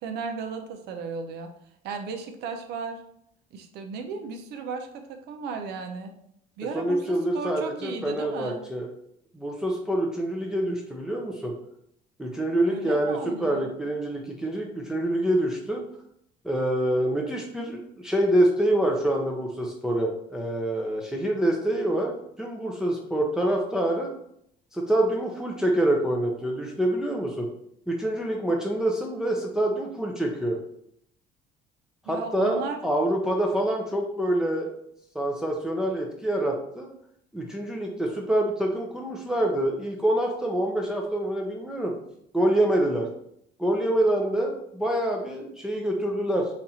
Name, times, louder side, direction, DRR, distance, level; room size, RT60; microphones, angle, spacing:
voice 1, 0.0-1.5 1.8-3.0 3.5-6.1 6.6-8.6 12.7-13.7 32.1-32.8, right 5 dB, 80° right, 5 dB, 0.7 m, -35 dB
voice 2, 6.7-8.9 9.3-11.5 12.2-15.8 16.4-24.1 24.7-27.5 27.9-30.6 32.1-34.7 35.1-36.9 37.3-41.9 42.3-43.1 43.6-46.4, right 1 dB, 5° right, -1 dB, 0.6 m, -26 dB
4.2 x 2.5 x 4.2 m, 0.72 s
cardioid pair, 110°, 17 cm